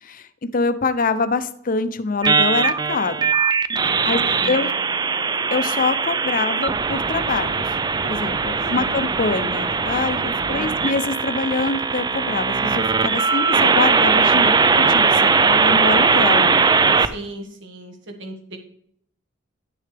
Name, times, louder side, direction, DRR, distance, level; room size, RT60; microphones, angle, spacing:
voice 1, 0.0-3.3 4.0-4.7 5.5-7.7 8.0-16.7, left 4 dB, 45° left, 11 dB, 0.6 m, -25 dB
sound 1, 2.2-17.1, right 5 dB, 20° right, 0.3 m, -19 dB
voice 2, 3.9-4.8 8.6-9.0 10.5-10.9 17.0-18.6, right 2 dB, 65° right, 3 dB, 1.6 m, -37 dB
10.0 x 6.6 x 3.4 m, 0.69 s
head